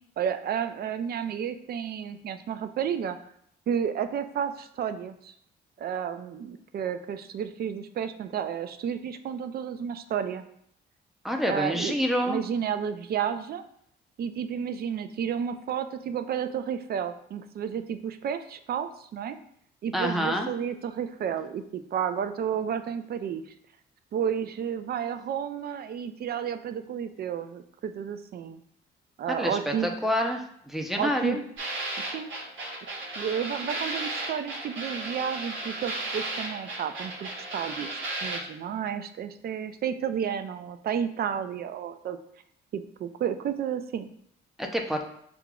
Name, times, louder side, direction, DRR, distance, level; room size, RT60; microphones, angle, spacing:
voice 1, 0.2-3.2 3.7-5.3 5.8-10.4 11.5-13.6 14.2-19.4 19.8-23.4 24.1-28.6 29.2-29.9 31.0-31.4 32.0-32.3 33.2-42.2 42.7-44.1 44.9-45.0, right 8 dB, 50° right, 9 dB, 0.4 m, -31 dB
voice 2, 11.2-12.4 19.9-20.5 29.3-31.4 44.6-45.0, equal, ahead, 2 dB, 0.6 m, -27 dB
sound 1, 31.6-38.4, right 2 dB, 75° right, 1.2 m, -34 dB
6.5 x 2.4 x 2.3 m, 0.69 s
cardioid pair, 90°, 20 cm